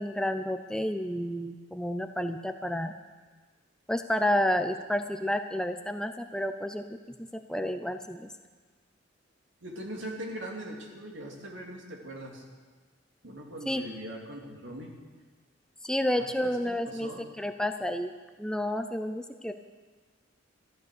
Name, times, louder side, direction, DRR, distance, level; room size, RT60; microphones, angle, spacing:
voice 1, 0.0-2.9 3.9-8.3 13.7-13.8 15.8-17.1 17.4-18.1 18.4-19.5, left 1 dB, 5° left, 7 dB, 0.5 m, -30 dB
voice 2, 9.6-12.4 13.2-14.9 16.2-17.2, right 1 dB, 75° right, 0 dB, 2.7 m, -41 dB
13.5 x 12.0 x 6.7 m, 1.4 s
head